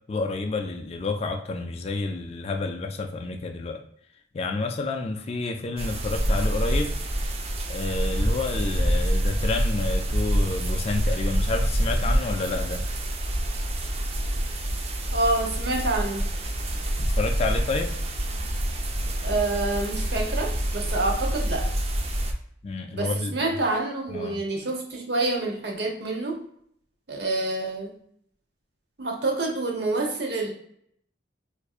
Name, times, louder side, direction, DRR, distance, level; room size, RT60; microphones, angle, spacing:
voice 1, 0.1-3.8 4.3-6.9 7.7-12.8 17.0-18.0 22.6-23.5 24.1-24.4, left 3 dB, 35° left, 0.3 m, -29 dB
sound 1, 5.8-22.3, right 1 dB, 35° right, 0.4 m, -26 dB
voice 2, 15.1-16.3 19.2-21.7 22.9-26.4 27.1-27.9 29.0-30.5, right 2 dB, 65° right, 0.8 m, -27 dB
4.6 x 2.5 x 2.3 m
head